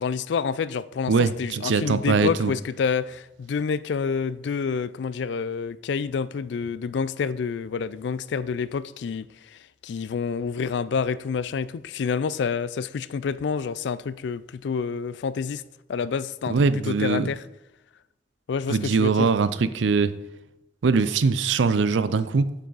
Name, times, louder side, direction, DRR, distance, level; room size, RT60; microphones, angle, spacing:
voice 1, 0.0-15.6 15.9-16.6 16.8-17.4 18.5-19.3, left 6 dB, 65° left, 0.3 m, -28 dB
voice 2, 1.1-2.5 16.5-17.3 18.7-20.2 20.8-22.5, right 4 dB, 80° right, 0.5 m, -22 dB
8.1 x 7.6 x 4.0 m
head